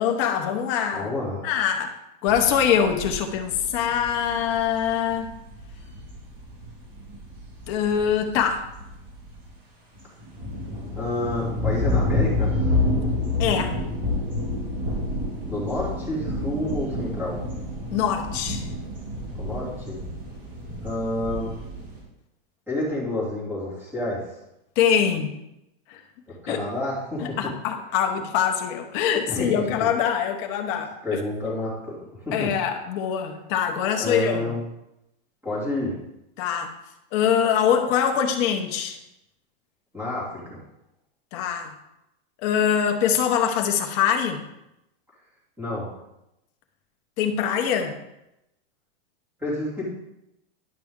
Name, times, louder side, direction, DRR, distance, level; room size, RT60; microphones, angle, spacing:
voice 1, 0.0-1.1 1.4-5.4 7.7-8.7 13.4-13.8 17.9-18.7 24.8-25.3 25.9-26.0 26.5-26.6 27.2-31.0 32.3-34.5 36.4-36.7 37.1-39.0 41.3-41.7 42.4-44.4 47.2-48.0, left 8 dB, 30° left, 4 dB, 0.9 m, -23 dB
voice 2, 0.9-1.4 11.0-12.7 15.4-17.4 19.3-20.0 20.8-21.5 22.7-24.3 26.4-27.4 29.3-29.9 31.0-32.0 32.2-32.5 34.0-34.6 35.4-35.9 39.9-40.6 45.6-45.9 49.4-49.8, left 2 dB, 5° right, -8 dB, 2.8 m, -29 dB
sound 1, 2.3-9.5 9.9-22.0, left 2 dB, 30° right, 2.5 m, -29 dB
10.5 x 5.8 x 3.7 m, 0.88 s
supercardioid pair, 180°, 29 cm